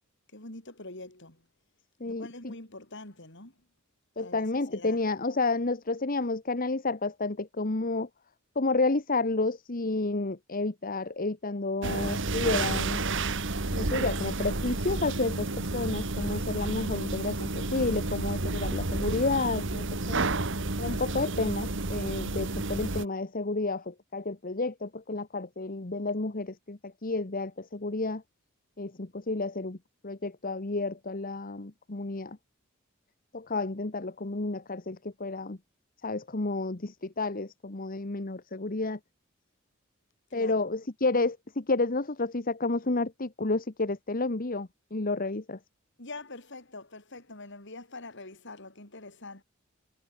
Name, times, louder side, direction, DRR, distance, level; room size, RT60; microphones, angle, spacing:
voice 1, 0.3-1.5 2.0-3.6 4.2-5.0 40.3-40.7 46.0-49.4, left 2 dB, 60° left, 6.4 m, -45 dB
voice 2, 2.0-2.5 4.2-8.1 8.5-13.0 13.7-20.3 20.8-28.2 28.8-29.8 30.0-32.4 33.3-35.6 36.0-39.0 40.3-45.6, left 3 dB, 45° left, 1.3 m, -31 dB
sound 1, 11.8-23.0, right 2 dB, 60° right, 2.2 m, -31 dB
head